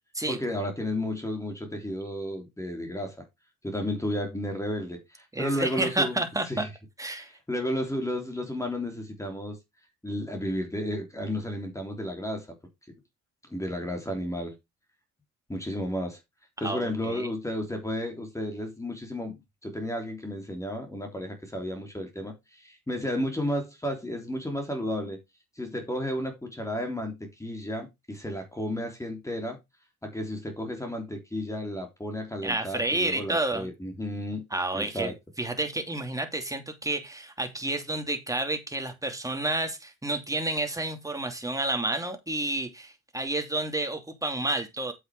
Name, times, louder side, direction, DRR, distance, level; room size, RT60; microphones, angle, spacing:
voice 1, 0.3-3.2 3.6-6.7 7.1-9.6 10.0-12.5 13.5-14.6 15.5-16.2 16.6-25.2 25.5-29.6 30.0-34.4 34.7-35.1, left 1 dB, 10° left, 3.2 m, -33 dB
voice 2, 5.3-6.7 7.0-7.3 16.6-17.3 32.4-33.7 34.5-44.9, right 2 dB, 10° right, 2.7 m, -30 dB
7.8 x 6.6 x 4.8 m
cardioid pair, 90°, 30 cm